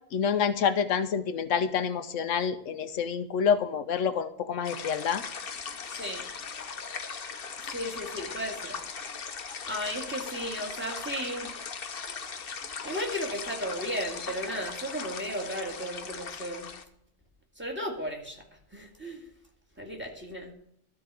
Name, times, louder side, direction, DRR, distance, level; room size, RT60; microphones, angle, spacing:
voice 1, 0.1-5.2, left 7 dB, 85° left, 10 dB, 1.1 m, -27 dB
sound 1, 4.6-16.8, left 5 dB, 50° left, 1.0 m, -39 dB
voice 2, 7.7-8.8 9.7-11.5 12.8-16.7 17.6-18.4 18.7-19.2 19.8-20.5, equal, 10° right, 2 dB, 2.3 m, -35 dB
13.0 x 4.7 x 8.2 m, 0.72 s
omnidirectional pair, 1.3 m